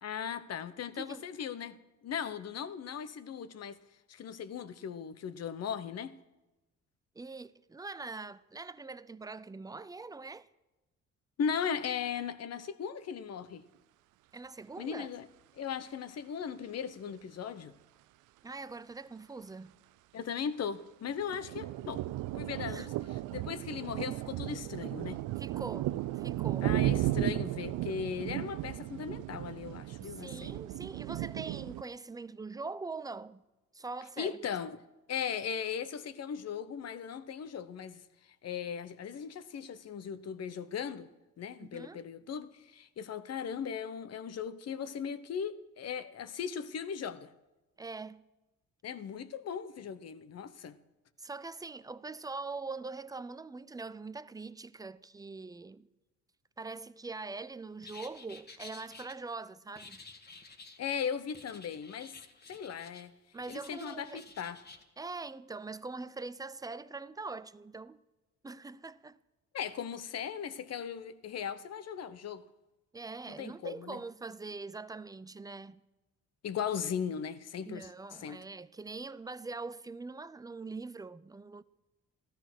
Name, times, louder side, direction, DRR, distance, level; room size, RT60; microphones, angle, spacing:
voice 1, 0.0-3.8 4.1-6.2 11.4-13.6 14.8-15.3 15.5-17.8 20.1-22.0 22.3-25.2 26.6-30.5 34.2-34.8 35.1-38.0 38.4-41.1 41.4-47.3 48.8-50.8 60.8-62.2 62.5-63.1 63.5-64.6 69.5-72.4 73.4-74.0 76.4-77.9 78.2-78.4, left 7 dB, 55° left, 0.9 m, -38 dB
voice 2, 7.2-10.5 14.3-15.1 18.4-19.8 22.7-23.0 25.4-26.7 30.0-33.4 33.7-34.4 41.6-42.0 47.8-48.2 51.2-55.9 56.6-60.0 63.3-64.2 65.0-68.0 68.4-69.2 72.9-75.8 77.6-81.6, right 3 dB, 10° right, 0.5 m, -43 dB
sound 1, 21.1-31.8, right 15 dB, 85° right, 0.5 m, -35 dB
sound 2, 57.8-59.1 59.8-60.8 61.3-63.1 63.4-64.8, left 3 dB, 35° left, 1.7 m, -52 dB
14.5 x 13.0 x 6.2 m
cardioid pair, 90°, 30 cm